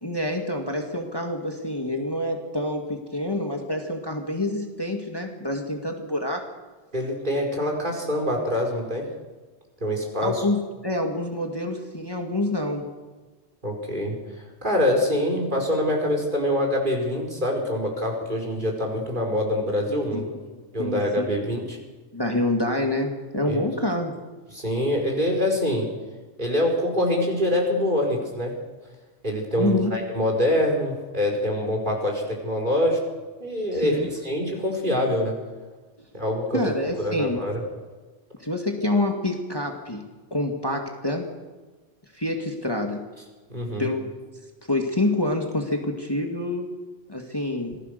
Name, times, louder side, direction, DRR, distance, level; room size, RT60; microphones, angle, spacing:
voice 1, 0.0-6.5 10.2-12.9 20.1-21.3 22.1-24.2 29.6-30.0 33.7-34.1 36.5-37.4 38.4-41.3 42.1-43.1 43.8-44.1 44.7-46.7 47.1-47.8, left 1 dB, 20° left, 2 dB, 2.1 m, -27 dB
voice 2, 6.9-9.1 9.8-10.4 13.6-14.2 14.6-20.2 20.7-21.8 23.5-23.6 24.5-25.9 26.4-28.5 29.2-33.0 33.4-34.0 34.2-35.3 36.1-36.6 37.0-37.6 43.5-43.9, left 1 dB, 45° right, 1 dB, 5.2 m, -25 dB
26.5 x 19.5 x 6.7 m, 1.3 s
omnidirectional pair, 1.2 m